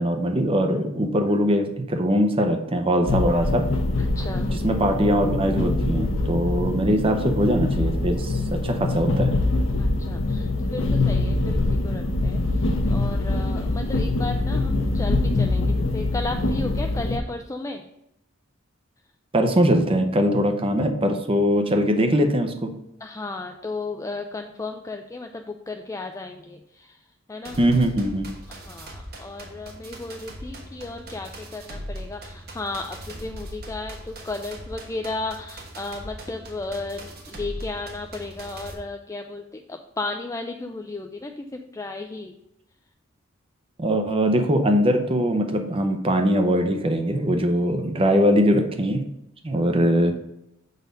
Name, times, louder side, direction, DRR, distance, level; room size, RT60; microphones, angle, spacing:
voice 1, 0.0-3.7 4.5-9.3 19.3-22.7 27.6-28.3 43.8-49.0 49.4-50.2, equal, 25° right, 5 dB, 0.6 m, -21 dB
sound 1, 3.1-17.2, left 2 dB, 65° left, 0.9 m, -24 dB
voice 2, 4.0-4.5 9.8-12.4 12.9-17.8 23.0-27.0 27.3-27.6 28.5-42.3, left 3 dB, 15° left, 4 dB, 0.4 m, -34 dB
sound 2, 27.4-38.7, right 1 dB, 50° right, 1.3 m, -40 dB
6.8 x 4.1 x 5.1 m, 0.84 s
head